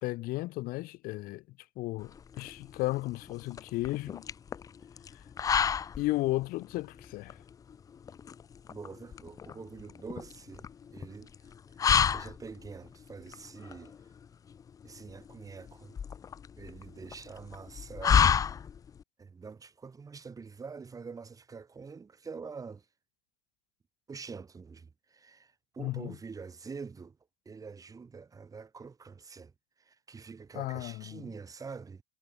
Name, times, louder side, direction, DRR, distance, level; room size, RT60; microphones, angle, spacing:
voice 1, 0.0-1.4 1.8-4.2 5.1-5.2 6.0-7.4 25.8-26.2 30.5-31.2, left 19 dB, 50° left, 2.8 m, -34 dB
sound 1, 2.0-19.0, left 7 dB, 20° left, 0.5 m, -31 dB
voice 2, 8.7-14.1 14.8-15.9 16.6-18.2 19.2-22.9 24.1-27.2 27.4-29.5 29.8-32.0, right 5 dB, 20° right, 3.5 m, -46 dB
supercardioid pair, 110°, 19 cm